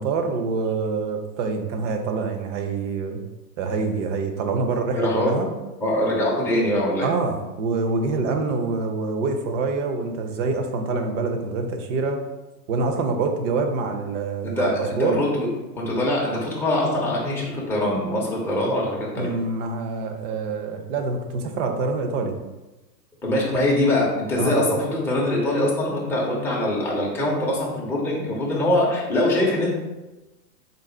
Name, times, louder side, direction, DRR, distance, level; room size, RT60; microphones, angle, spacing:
voice 1, 0.0-3.2 3.6-5.5 7.0-12.2 12.7-15.2 19.2-22.3 24.4-24.6, right 4 dB, 50° right, 5 dB, 0.7 m, -26 dB
voice 2, 5.0-5.3 5.8-7.1 14.4-15.5 15.7-19.3 23.2-29.7, left 1 dB, 5° left, -5 dB, 0.5 m, -23 dB
3.9 x 2.0 x 4.2 m, 1.1 s
hypercardioid pair, 120°, 50 cm